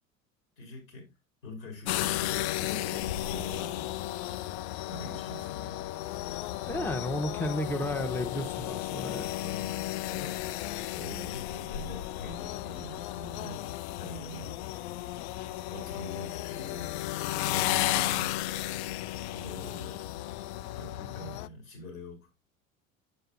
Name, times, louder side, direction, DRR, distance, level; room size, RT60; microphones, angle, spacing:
voice 1, 0.6-1.1 1.4-4.0 4.9-5.9 9.4-10.4 10.9-13.7 13.9-14.6 15.7-17.1 17.4-18.5 19.3-20.1 20.7-22.3, left 2 dB, 70° left, 5.0 m, -44 dB
sound 1, 1.9-21.5, left 14 dB, 55° left, 0.5 m, -34 dB
voice 2, 6.7-9.3, left 1 dB, 5° left, 0.8 m, -33 dB
9.6 x 7.8 x 2.5 m
figure-of-eight pair, 70°, 41 cm